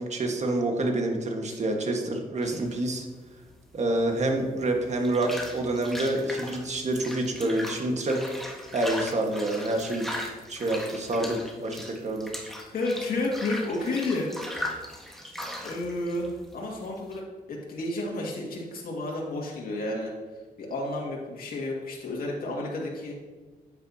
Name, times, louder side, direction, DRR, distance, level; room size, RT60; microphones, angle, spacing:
voice 1, 0.0-3.0 3.7-8.2 8.7-10.1 10.5-12.3, right 1 dB, 45° right, 2 dB, 1.5 m, -27 dB
sound 1, 2.4-17.2, left 1 dB, ahead, 1.4 m, -39 dB
voice 2, 12.7-14.3 15.6-17.2 17.5-20.1 20.6-23.2, left 2 dB, 70° left, -3 dB, 2.1 m, -31 dB
9.5 x 8.7 x 2.8 m, 1.3 s
cardioid pair, 95°, 16 cm